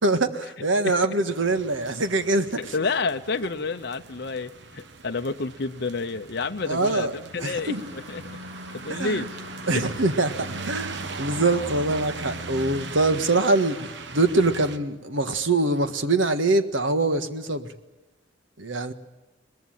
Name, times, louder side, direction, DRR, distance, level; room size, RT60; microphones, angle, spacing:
voice 1, 0.0-2.7 6.7-7.1 7.4-7.8 8.9-9.3 9.7-10.3 10.6-17.7 18.6-18.9, right 2 dB, 80° right, 8 dB, 1.7 m, -24 dB
sound 1, 1.3-14.8, right 3 dB, 60° right, 1.2 m, -39 dB
voice 2, 2.6-8.3 8.7-9.4 9.7-9.9, left 4 dB, 55° left, 7 dB, 0.8 m, -29 dB
sound 2, 7.4-13.9, right 1 dB, 35° right, 5.9 m, -51 dB
22.5 x 20.5 x 9.0 m, 1.1 s
head